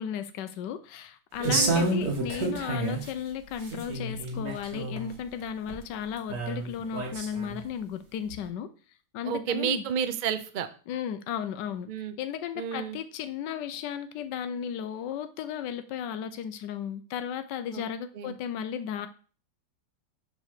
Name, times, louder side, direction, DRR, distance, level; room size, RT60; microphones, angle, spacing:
voice 1, 0.0-8.7 9.1-9.8 10.9-19.1, left 8 dB, 85° left, 10 dB, 1.3 m, -35 dB
sound 1, 1.4-3.1 3.5-5.1 5.7-5.8 6.3-7.6 8.3-8.4, right 2 dB, 65° right, 2.0 m, -29 dB
voice 2, 1.4-1.9 9.2-10.7 11.9-12.1 12.6-13.0 17.7-17.8 18.1-18.4, right 8 dB, 85° right, 9 dB, 0.4 m, -31 dB
7.2 x 3.8 x 6.5 m, 0.39 s
omnidirectional pair, 1.8 m